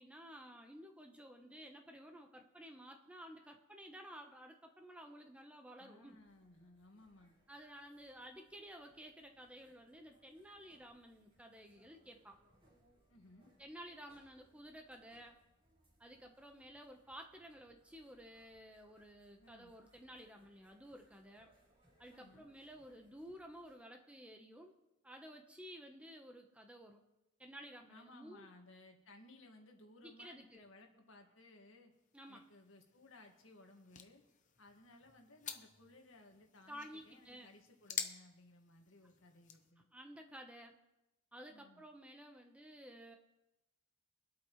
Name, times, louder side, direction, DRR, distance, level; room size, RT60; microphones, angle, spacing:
voice 1, 0.0-6.2 7.5-12.4 13.6-15.4 16.0-21.5 22.0-24.7 25.0-27.0 27.4-28.5 30.0-30.6 32.1-32.4 36.7-37.5 39.9-40.8 41.3-43.2, equal, 5° right, 3 dB, 1.0 m, -54 dB
voice 2, 5.8-7.4 13.1-13.5 19.4-19.7 22.1-22.5 27.9-31.9 32.3-34.2 34.6-39.9 41.5-41.8, left 2 dB, 70° left, 2 dB, 1.9 m, -61 dB
sound 1, 6.1-23.7, equal, 25° right, 4.8 m, -73 dB
sound 2, 31.9-39.7, left 7 dB, 40° left, 0.9 m, -50 dB
24.0 x 8.5 x 3.2 m, 0.93 s
head